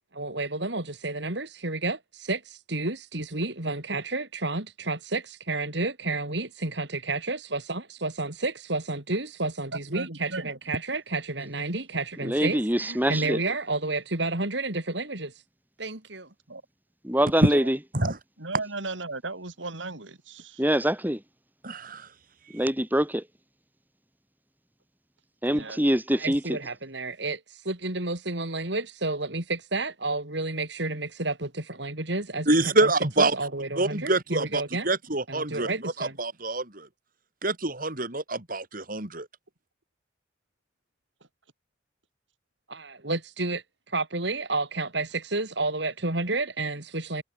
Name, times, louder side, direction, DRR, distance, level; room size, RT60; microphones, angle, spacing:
voice 1, 0.1-15.3 15.8-16.3 25.6-25.7 26.2-27.4 27.6-32.5 32.8-32.9 33.2-34.9 35.3-36.2 42.7-43.6 43.9-47.2, right 2 dB, 65° right, 3.5 m, -31 dB
voice 2, 9.7-10.5 16.5-16.6 17.5-17.7 18.0-20.6 25.5-25.8, right 3 dB, 80° right, 4.0 m, -36 dB
voice 3, 12.2-13.4 17.0-17.8 20.6-21.2 22.5-23.2 25.4-26.6, equal, 10° right, 3.1 m, -24 dB
voice 4, 21.6-22.1 32.5-33.3 33.8-36.9 37.4-39.3, right 2 dB, 45° right, 4.5 m, -26 dB
head